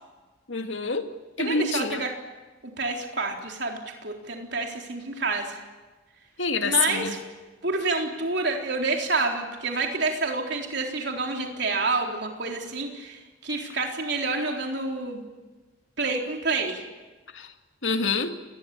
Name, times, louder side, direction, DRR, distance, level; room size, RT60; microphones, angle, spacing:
voice 1, 0.5-1.1 1.4-2.0 6.4-7.2 17.3-17.5 17.8-18.4, left 4 dB, 70° left, 6 dB, 2.2 m, -26 dB
voice 2, 1.4-2.1 2.8-5.6 6.6-7.2 7.6-15.2 16.0-16.9, right 3 dB, 60° right, 2 dB, 3.9 m, -28 dB
28.0 x 20.5 x 8.5 m, 1.2 s
head